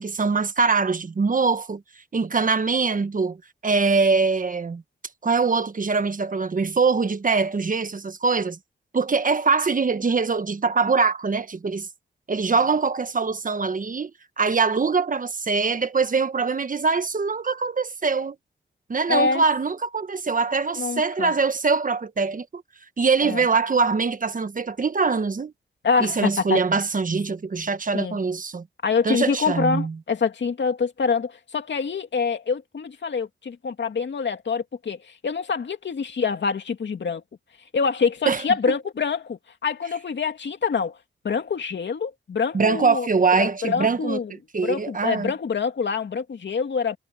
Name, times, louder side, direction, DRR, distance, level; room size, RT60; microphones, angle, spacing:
voice 1, 0.0-1.8 2.1-3.4 3.6-4.8 5.2-8.6 8.9-11.9 12.3-14.1 14.4-18.4 18.9-22.6 23.0-25.5 26.0-28.6 29.0-29.9 38.3-38.4 42.5-44.2 44.5-45.3, right 4 dB, 40° right, 1.3 m, -23 dB
voice 2, 19.1-19.4 20.8-21.3 23.2-23.5 25.8-26.6 27.9-28.2 28.8-37.2 37.7-41.0 41.2-43.1 43.4-44.3 44.6-47.0, left 5 dB, 65° left, 2.7 m, -25 dB
cardioid pair, 75°, 20 cm